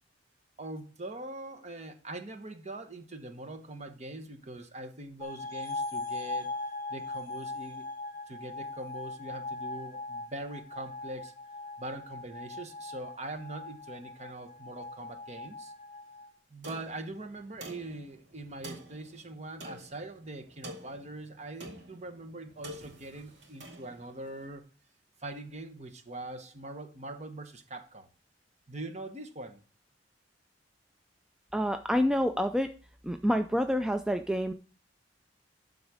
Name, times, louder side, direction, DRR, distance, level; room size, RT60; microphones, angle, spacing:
voice 1, 0.6-6.5 6.9-7.8 8.3-11.3 11.8-15.7 16.5-24.6 25.2-28.1 28.7-29.6, right 2 dB, 40° right, 7 dB, 1.1 m, -42 dB
sound 1, 5.2-16.3, left 2 dB, 20° left, 1.7 m, -40 dB
sound 2, 16.6-24.4, right 1 dB, 70° right, 2.2 m, -48 dB
voice 2, 31.5-32.7 33.0-34.5, equal, 5° right, 7 dB, 0.3 m, -27 dB
12.0 x 4.1 x 4.9 m, 0.37 s
head